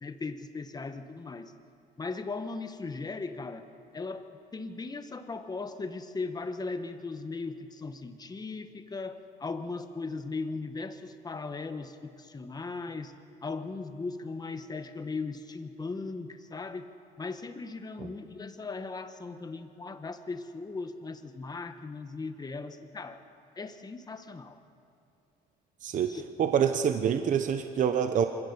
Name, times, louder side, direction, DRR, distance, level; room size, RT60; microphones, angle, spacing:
voice 1, 0.0-1.5 2.0-3.7 3.9-4.3 4.5-13.1 13.4-16.9 17.2-23.2 23.5-24.6 26.1-26.2, left 3 dB, 25° left, 8 dB, 1.4 m, -38 dB
voice 2, 26.4-28.2, right 8 dB, 50° right, 8 dB, 0.9 m, -26 dB
25.5 x 17.5 x 7.0 m, 2.7 s
cardioid pair, 110°, 17 cm